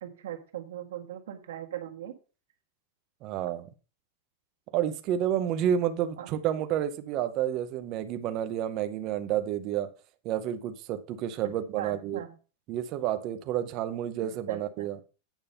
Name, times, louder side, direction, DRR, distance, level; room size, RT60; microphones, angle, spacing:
voice 1, 0.0-2.1 6.2-6.3 11.4-12.3 14.2-14.9, right 11 dB, 75° right, 1.6 m, -39 dB
voice 2, 3.2-3.6 4.7-9.9 10.2-12.2 12.7-15.0, right 10 dB, 30° right, 0.7 m, -30 dB
9.0 x 5.3 x 5.5 m
supercardioid pair, 180°, 0 cm